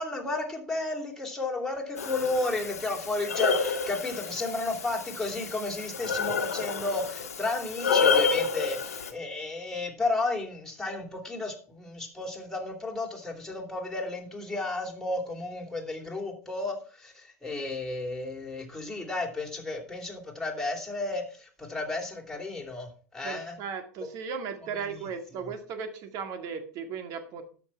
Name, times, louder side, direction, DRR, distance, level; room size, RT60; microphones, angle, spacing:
voice 1, 0.0-23.6 24.7-25.1 25.4-25.5, left 2 dB, 5° left, 0 dB, 3.3 m, -33 dB
Breathing, 2.0-9.1, left 5 dB, 75° left, 1.4 m, -29 dB
voice 2, 23.2-27.4, right 6 dB, 45° right, 9 dB, 2.1 m, -36 dB
13.0 x 6.0 x 5.9 m, 0.41 s
figure-of-eight pair, 85°, 8 cm